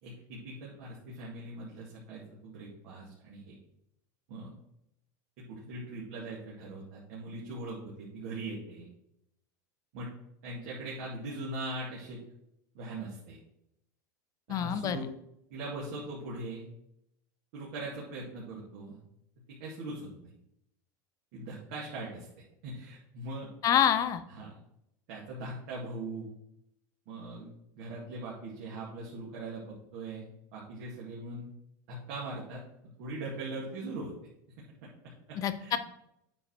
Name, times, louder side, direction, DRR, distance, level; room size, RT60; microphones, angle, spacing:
voice 1, 0.0-3.6 4.3-4.5 5.4-8.9 9.9-10.1 10.4-12.2 12.7-13.4 14.5-15.1 15.5-16.7 17.5-19.0 19.5-20.3 21.3-23.5 24.4-24.5 25.1-26.3 27.1-31.5 31.9-32.6 33.0-34.1 34.6-35.8, right 2 dB, 70° right, -5 dB, 2.2 m, -41 dB
voice 2, 14.5-15.0 23.6-24.2 35.4-35.8, left 9 dB, 35° left, 11 dB, 0.7 m, -26 dB
8.8 x 4.8 x 4.5 m, 0.79 s
supercardioid pair, 135°, 10 cm